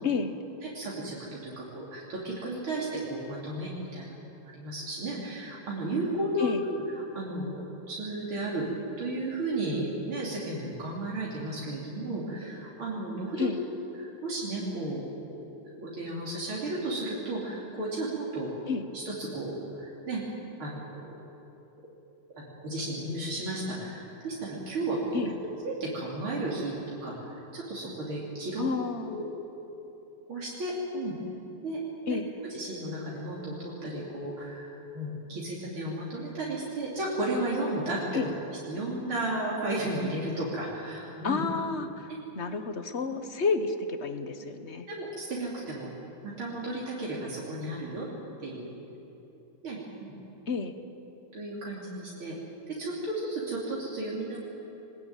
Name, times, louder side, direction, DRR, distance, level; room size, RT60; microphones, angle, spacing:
voice 1, 0.6-6.8 7.1-8.7 9.0-13.5 14.0-18.5 18.9-20.2 20.6-21.2 22.4-25.2 25.6-26.7 27.0-28.7 29.1-29.3 30.3-31.2 31.6-32.2 32.5-38.0 38.6-41.4 42.1-42.2 44.9-45.9 46.2-48.1 48.4-48.8 49.6-50.1 51.3-52.4 52.7-54.4, right 2 dB, 80° right, -5 dB, 4.0 m, -34 dB
voice 2, 28.6-29.2 32.1-32.3 38.1-38.3 41.2-42.1 42.3-44.9 50.5-50.7, left 5 dB, 40° left, 8 dB, 1.2 m, -30 dB
23.0 x 20.5 x 9.1 m, 3.0 s
omnidirectional pair, 2.3 m